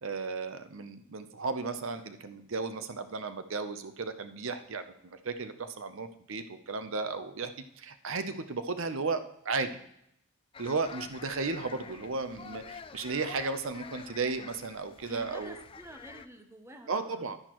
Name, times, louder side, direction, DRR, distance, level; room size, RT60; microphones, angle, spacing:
voice 1, 0.0-7.5 7.8-9.7 10.6-15.5 16.9-17.4, right 4 dB, 60° right, 10 dB, 0.7 m, -34 dB
Portugese market traders, 10.5-16.3, left 5 dB, 25° left, 0.3 m, -48 dB
voice 2, 15.1-17.4, equal, 10° right, 5 dB, 0.8 m, -49 dB
11.0 x 10.0 x 3.0 m, 0.75 s
head